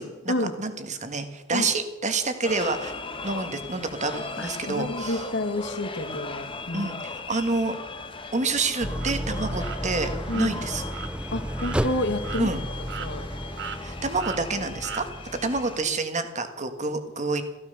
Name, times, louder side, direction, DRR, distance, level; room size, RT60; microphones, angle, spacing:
voice 1, 0.0-2.9 3.2-5.2 6.7-7.8 8.3-10.8 12.4-12.6 13.8-15.1 15.4-17.4, right 3 dB, 35° right, 8 dB, 1.7 m, -28 dB
sound 1, 2.4-15.8, left 3 dB, 25° left, 1.2 m, -38 dB
voice 2, 4.4-6.9 10.3-10.5 11.3-12.5 13.0-13.3, left 1 dB, 55° left, 8 dB, 1.8 m, -29 dB
Idling, 8.8-15.9, equal, 5° right, 0.4 m, -33 dB
sound 2, 9.0-9.1 9.6-9.8 10.3-10.5 10.9-11.1 11.6-11.8 12.2-12.5 12.9-13.3 13.6-13.8 14.2-14.4 14.8-15.1, right 7 dB, 60° right, 1.0 m, -36 dB
15.0 x 13.5 x 6.8 m, 1.1 s
head